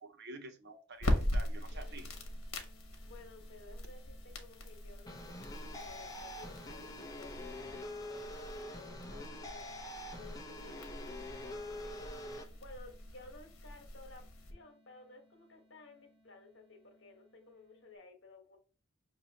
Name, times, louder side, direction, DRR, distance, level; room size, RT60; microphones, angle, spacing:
voice 1, 0.0-2.1, right 2 dB, 50° right, 0.8 m, -49 dB
sound 1, 0.9-14.5, left 1 dB, 75° left, 1.0 m, -41 dB
sound 2, 1.7-18.0, left 1 dB, 5° right, 1.4 m, -67 dB
voice 2, 3.0-12.2 12.5-14.2 14.5-18.6, left 3 dB, 60° left, 1.3 m, -56 dB
sound 3, 5.1-12.4, left 1 dB, 15° left, 0.7 m, -45 dB
6.3 x 2.8 x 2.8 m
head